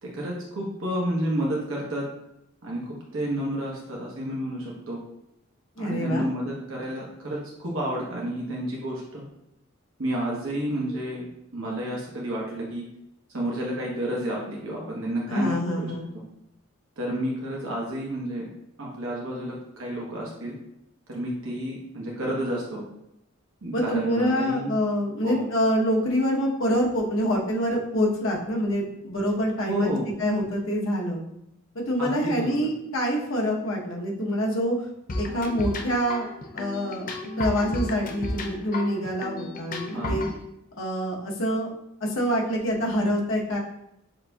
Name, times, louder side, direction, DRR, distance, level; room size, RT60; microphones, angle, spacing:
voice 1, 0.0-2.0 2.6-2.8 3.1-5.0 5.8-9.3 10.0-11.2 11.5-12.8 13.3-15.9 17.0-18.5 18.8-20.6 21.1-22.8 23.6-24.7 25.2-25.4 29.7-30.1 32.0-32.7 39.9-40.2, right 1 dB, 80° right, -4 dB, 1.0 m, -30 dB
voice 2, 5.8-6.3 15.3-16.1 23.7-29.9 30.2-31.2 31.7-34.8 35.2-36.3 36.5-37.1 37.4-40.3 40.8-41.7 42.0-43.6, equal, 75° left, -1 dB, 0.9 m, -26 dB
sound 1, 35.1-40.4, left 1 dB, 40° left, 0.5 m, -33 dB
6.3 x 2.6 x 2.3 m, 0.83 s
head